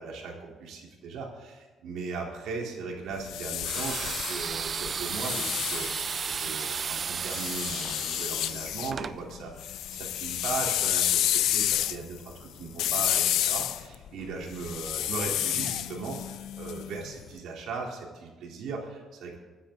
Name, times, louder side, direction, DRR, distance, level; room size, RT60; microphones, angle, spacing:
voice 1, 0.0-19.4, right 4 dB, 80° right, -1 dB, 3.8 m, -38 dB
sound 1, 3.1-6.6 7.3-8.9 9.3-17.2, left 12 dB, 85° left, 0.6 m, -30 dB
sound 2, 3.6-9.2, right 6 dB, 45° right, 0.5 m, -34 dB
28.0 x 9.9 x 4.0 m, 1.3 s
cardioid pair, 90°, 0 cm